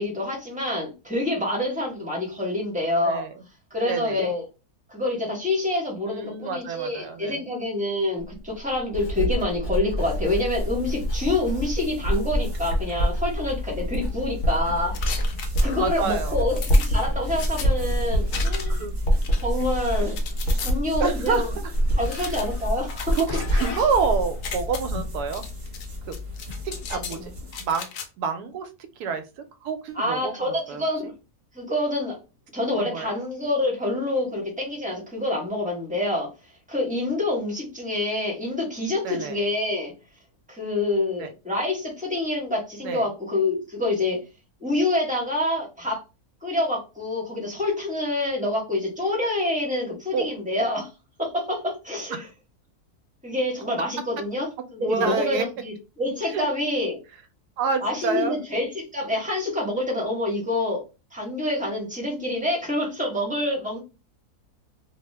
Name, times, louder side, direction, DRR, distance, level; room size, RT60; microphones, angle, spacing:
voice 1, 0.0-3.2 3.7-4.4 4.9-14.9 15.6-18.8 19.4-20.2 20.6-21.5 22.0-23.2 27.1-27.2 29.9-31.1 31.5-32.2 32.5-36.3 36.7-39.9 40.5-44.2 44.6-46.0 46.4-50.9 51.2-52.2 53.2-57.0 57.8-60.8 61.1-63.8, left 2 dB, 5° right, -2 dB, 0.8 m, -27 dB
voice 2, 3.0-3.3 3.8-4.2 6.0-7.4 9.6-10.1 15.8-16.4 18.7-19.0 21.0-21.4 22.1-22.4 23.1-25.4 26.1-26.2 26.9-27.3 27.6-27.9 28.2-28.7 29.0-30.4 30.7-30.8 32.7-33.1 39.0-39.4 41.2-41.3 42.8-43.1 50.1-50.3 52.1-52.3 54.8-55.4 56.3-56.5 57.6-58.4, right 5 dB, 85° right, 8 dB, 1.1 m, -28 dB
Writing, 8.2-25.2 25.5-26.0, equal, 55° left, 1.1 m, -26 dB
sound 1, 10.0-27.8, left 3 dB, 35° right, 0.9 m, -36 dB
sound 2, 14.9-16.0 16.6-17.7 18.3-18.9 19.2-20.7 21.3-21.4 22.0-24.0 24.3-24.8 25.3-25.9 26.1-27.2 27.5-28.1, left 6 dB, 80° left, 1.1 m, -36 dB
2.8 x 2.1 x 3.1 m, 0.29 s
omnidirectional pair, 1.6 m